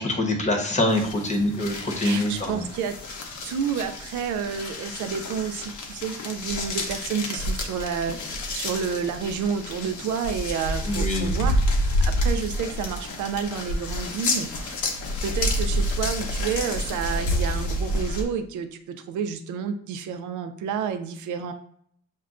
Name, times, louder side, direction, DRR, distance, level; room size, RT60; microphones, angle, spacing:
voice 1, 0.0-2.6 10.9-11.3, left 1 dB, 25° left, 2 dB, 0.9 m, -25 dB
sound 1, 0.9-18.2, left 1 dB, 75° left, 0.8 m, -29 dB
voice 2, 2.0-3.0 3.4-11.6 12.0-14.8 15.2-21.5, right 7 dB, 75° right, 8 dB, 0.5 m, -30 dB
6.2 x 2.2 x 2.4 m, 0.64 s
cardioid pair, 90°, 30 cm